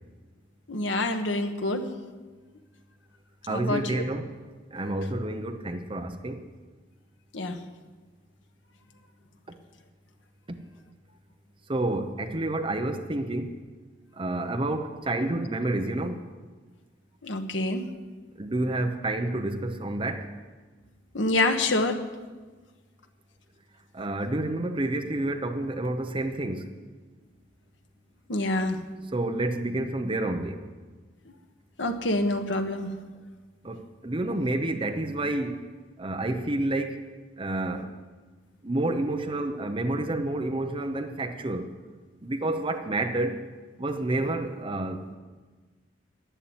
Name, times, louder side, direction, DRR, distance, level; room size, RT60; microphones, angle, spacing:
voice 1, 0.7-2.0 3.5-4.0 7.3-7.6 17.2-17.9 21.1-22.0 28.3-28.8 31.8-32.9, left 2 dB, 75° left, 1.3 m, -27 dB
voice 2, 3.5-4.3 4.7-6.5 9.5-9.6 11.7-13.6 14.2-16.2 18.4-20.3 23.9-26.7 29.1-30.6 33.6-35.7 36.0-37.0 37.4-38.0 38.6-41.7 42.2-43.5 43.8-45.1, right 2 dB, 30° right, 0.8 m, -29 dB
11.5 x 10.5 x 8.9 m
head